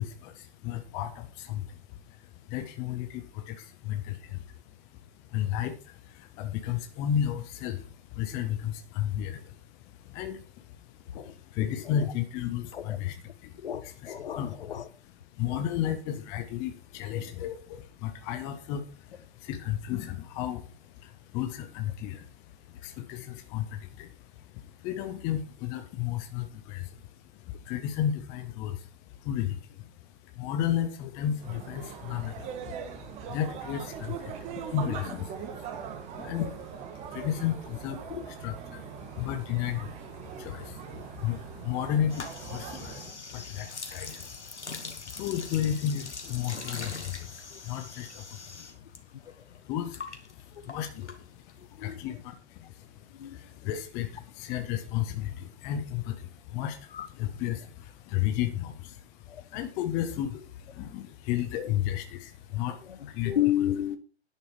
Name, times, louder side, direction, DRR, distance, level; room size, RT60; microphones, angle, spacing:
voice 1, 0.0-14.6 15.3-63.4, left 10 dB, 10° left, 7 dB, 0.5 m, -34 dB
voice 2, 13.6-14.9 36.2-36.4 38.1-38.2 47.5-47.6 49.3-49.4 51.8-52.0 53.1-53.4 56.9-57.1 59.3-59.4 61.6-61.7 62.8-64.0, left 12 dB, 55° left, 15 dB, 1.4 m, -32 dB
sound 1, 31.4-43.2, right 7 dB, 20° right, 1.6 m, -41 dB
sound 2, 42.1-49.0 49.2-51.6, left 4 dB, 90° left, 2.5 m, -42 dB
11.0 x 10.5 x 4.5 m, 0.36 s
hypercardioid pair, 140°, 34 cm